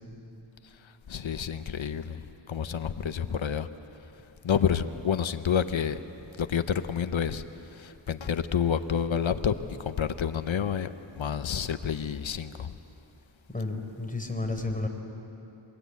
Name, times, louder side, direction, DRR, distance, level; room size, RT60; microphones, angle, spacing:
voice 1, 1.1-3.7 4.4-6.0 6.4-7.4 7.7-10.9 11.2-12.7, left 7 dB, 70° left, 10 dB, 1.0 m, -29 dB
voice 2, 13.5-14.9, left 2 dB, 15° left, 3 dB, 4.1 m, -31 dB
27.5 x 22.0 x 8.4 m, 3.0 s
cardioid pair, 50°, 49 cm